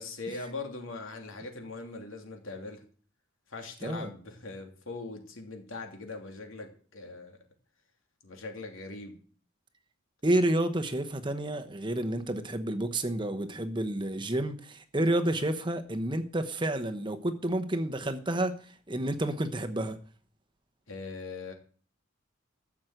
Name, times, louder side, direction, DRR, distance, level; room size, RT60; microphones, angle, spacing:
voice 1, 0.0-2.8 3.5-7.4 8.2-9.2 20.9-21.5, left 3 dB, 75° left, 2.9 m, -41 dB
voice 2, 3.8-4.1 10.2-20.0, right 1 dB, 20° right, 1.0 m, -30 dB
13.5 x 7.3 x 7.9 m
head